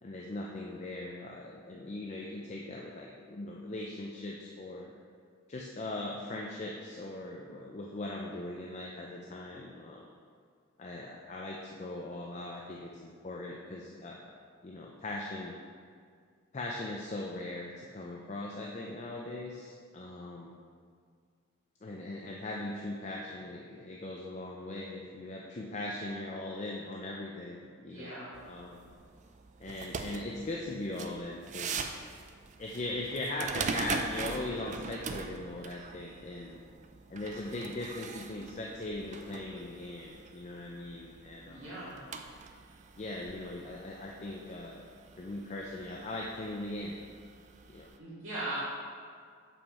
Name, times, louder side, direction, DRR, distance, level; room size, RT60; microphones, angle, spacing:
voice 1, 0.0-4.9 5.5-10.1 10.8-14.4 14.6-15.6 16.5-20.6 21.8-28.8 29.6-31.9 32.6-36.6 37.1-41.7 43.0-44.9 45.2-47.0 47.7-47.9, left 2 dB, 30° left, -2 dB, 0.5 m, -40 dB
voice 2, 27.8-28.3 41.4-42.0 48.0-48.6, right 2 dB, 65° right, -10 dB, 1.7 m, -39 dB
sound 1, 28.3-48.0, right 4 dB, 35° right, 0.3 m, -42 dB
7.2 x 5.5 x 4.2 m, 2.1 s
head